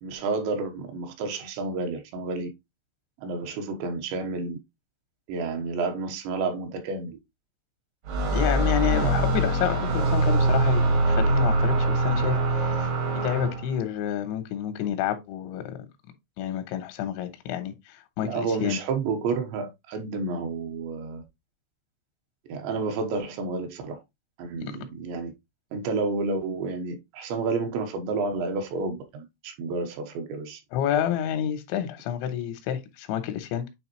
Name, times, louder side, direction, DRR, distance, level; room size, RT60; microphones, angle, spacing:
voice 1, 0.0-2.5 3.2-4.6 5.3-7.2 8.5-9.0 18.2-21.2 22.5-24.0 24.4-25.3 25.7-30.6, right 4 dB, 85° right, 3.4 m, -30 dB
sound 1, 8.1-13.8, right 2 dB, 65° right, 1.2 m, -23 dB
voice 2, 8.3-12.9 13.2-15.8 16.4-18.8 30.7-33.7, left 9 dB, 90° left, 3.3 m, -29 dB
9.1 x 3.7 x 3.0 m
omnidirectional pair, 5.1 m